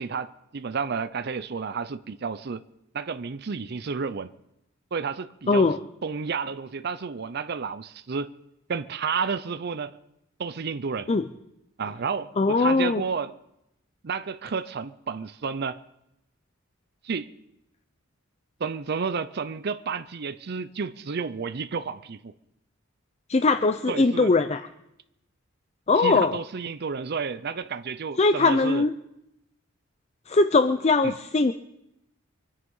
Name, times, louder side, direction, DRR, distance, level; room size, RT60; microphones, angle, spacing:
voice 1, 0.0-2.6 2.9-4.3 4.9-5.7 6.0-8.3 8.7-10.0 10.4-11.1 11.8-13.4 14.0-15.8 17.0-17.3 18.6-22.3 23.9-24.4 26.0-28.9 31.0-31.2, right 5 dB, 50° right, 0.5 m, -31 dB
voice 2, 5.5-5.8 11.1-11.2 12.4-13.0 23.3-24.6 25.9-26.4 28.2-28.9 30.3-31.5, left 3 dB, 30° left, 0.5 m, -21 dB
24.0 x 9.8 x 5.5 m
head